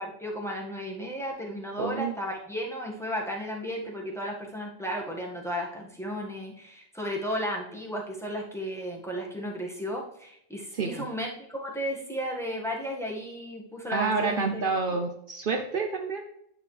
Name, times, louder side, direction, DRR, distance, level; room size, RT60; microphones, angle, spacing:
voice 1, 0.0-14.6, equal, 5° left, -2 dB, 1.7 m, -34 dB
voice 2, 1.8-2.2 10.7-11.1 13.9-16.2, right 4 dB, 60° right, 4 dB, 0.9 m, -29 dB
9.8 x 6.9 x 3.3 m, 0.72 s
omnidirectional pair, 1.1 m